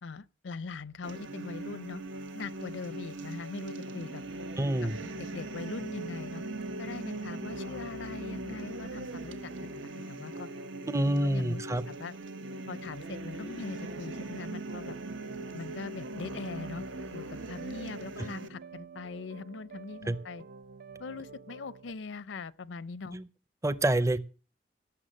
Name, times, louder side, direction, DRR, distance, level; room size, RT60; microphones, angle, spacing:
voice 1, 0.0-2.0 2.3-4.2 5.0-6.4 6.8-10.5 11.2-12.1 12.7-15.0 15.5-16.8 17.1-20.4 21.0-23.2, left 4 dB, 80° left, 0.6 m, -41 dB
sound 1, 1.0-18.5, right 2 dB, 85° right, 1.3 m, -40 dB
voice 2, 4.6-5.0 10.9-11.8 20.1-20.2 23.1-23.3 23.6-24.2, right 1 dB, 15° right, 0.6 m, -27 dB
sound 2, 7.3-21.9, right 4 dB, 55° right, 0.6 m, -51 dB
17.5 x 6.9 x 6.4 m
head